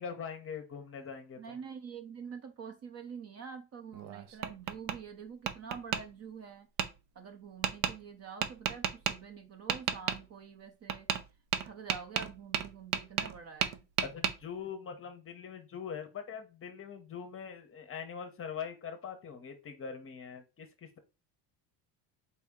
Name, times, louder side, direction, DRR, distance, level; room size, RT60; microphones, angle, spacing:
voice 1, 0.0-1.6 14.0-21.0, left 7 dB, 30° left, 7 dB, 0.7 m, -42 dB
voice 2, 1.4-6.7 7.1-11.1 11.6-13.8, right 6 dB, 35° right, 6 dB, 0.6 m, -46 dB
Tap, 3.9-5.0 5.5-6.0 6.8-6.9 7.6-7.9 8.4-9.1 9.7-10.2 10.9-11.2 11.5-13.4 13.6-14.3, right 9 dB, 70° right, 0.7 m, -32 dB
4.3 x 2.7 x 3.5 m, 0.28 s
cardioid pair, 145°, 46 cm